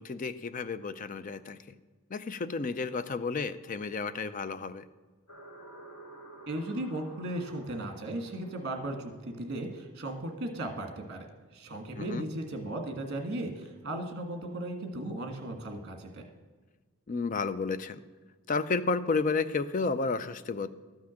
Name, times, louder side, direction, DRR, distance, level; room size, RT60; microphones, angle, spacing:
voice 1, 0.0-1.6 2.1-4.8 12.0-12.2 17.1-18.0 18.5-20.7, left 4 dB, 35° left, 13 dB, 0.4 m, -31 dB
sound 1, 5.3-9.9, right 1 dB, 75° left, 2.6 m, -52 dB
voice 2, 6.5-11.3 11.5-16.2, right 1 dB, 50° right, 4 dB, 1.6 m, -36 dB
13.0 x 5.9 x 6.4 m, 1.4 s
head